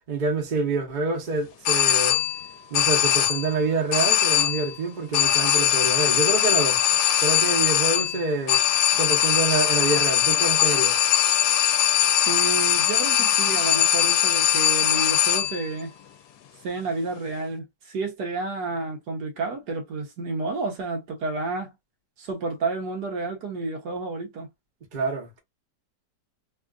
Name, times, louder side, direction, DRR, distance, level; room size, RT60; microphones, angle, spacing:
voice 1, 0.1-2.2 2.7-6.8 7.2-8.6 9.0-11.0 24.9-25.4, right 3 dB, 35° right, 0.9 m, -27 dB
sound 1, 1.7-2.5 2.7-3.6 3.9-4.8 5.1-15.7, left 10 dB, 80° left, 1.2 m, -21 dB
voice 2, 12.3-15.9 16.6-21.7 22.2-24.5, right 3 dB, 70° right, 1.5 m, -30 dB
3.5 x 2.4 x 2.4 m
omnidirectional pair, 1.9 m